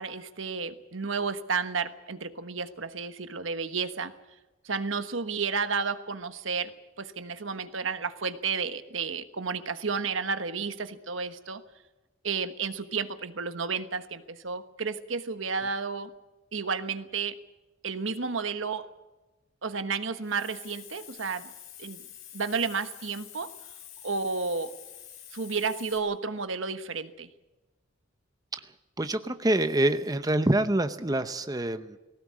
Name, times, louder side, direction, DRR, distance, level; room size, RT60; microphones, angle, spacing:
voice 1, 0.0-4.1 4.6-6.7 7.0-11.6 12.2-16.1 16.5-17.4 17.8-18.9 19.6-21.5 21.8-22.0 22.3-23.5 24.0-24.7 25.3-27.3, right 5 dB, 75° right, 10 dB, 1.3 m, -32 dB
Hiss, 20.2-26.0, left 10 dB, 85° left, 4.1 m, -47 dB
voice 2, 28.6-32.0, right 1 dB, 20° right, 10 dB, 0.7 m, -26 dB
19.5 x 17.5 x 8.5 m, 1.1 s
head